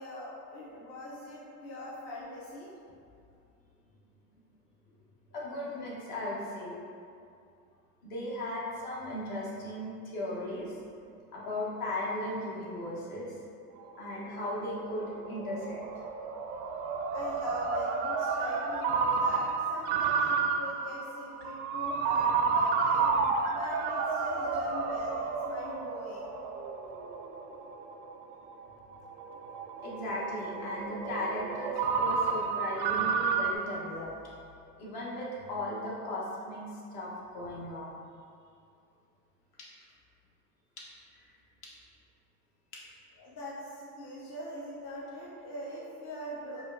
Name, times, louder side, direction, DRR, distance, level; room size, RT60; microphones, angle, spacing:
voice 1, 0.0-2.7 17.1-23.1 23.5-26.3 43.2-46.6, left 1 dB, 35° left, -7 dB, 0.7 m, -42 dB
voice 2, 5.3-6.8 8.0-10.7 11.3-13.4 14.0-15.8 29.8-34.1 34.8-38.0 39.6-39.7 40.8-40.9 41.2-41.3 41.6-41.7 42.7-42.8, left 1 dB, 50° left, -5 dB, 1.1 m, -37 dB
Ringtone, 13.8-33.6, right 5 dB, 65° right, 0.5 m, -31 dB
4.6 x 2.2 x 2.6 m, 2.4 s
hypercardioid pair, 80°, 47 cm